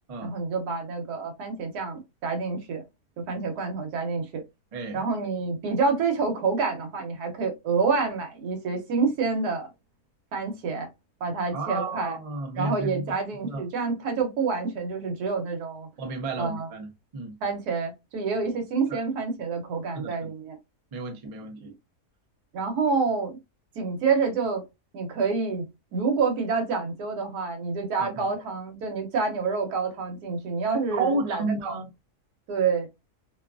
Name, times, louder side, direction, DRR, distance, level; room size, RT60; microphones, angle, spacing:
voice 1, 0.2-2.8 3.2-4.4 4.9-9.7 10.3-10.9 11.2-12.2 12.5-15.9 16.4-16.7 17.4-20.6 21.7-21.8 22.5-23.4 23.8-24.6 24.9-25.7 25.9-31.7 32.5-32.9, right 4 dB, 85° right, 1.3 m, -28 dB
voice 2, 4.7-5.0 11.5-13.1 13.4-13.6 16.0-17.4 18.9-19.0 19.9-20.3 20.9-21.7 28.0-28.2 30.9-31.9, right 3 dB, 50° right, 0.4 m, -32 dB
2.8 x 2.3 x 2.3 m
omnidirectional pair, 1.6 m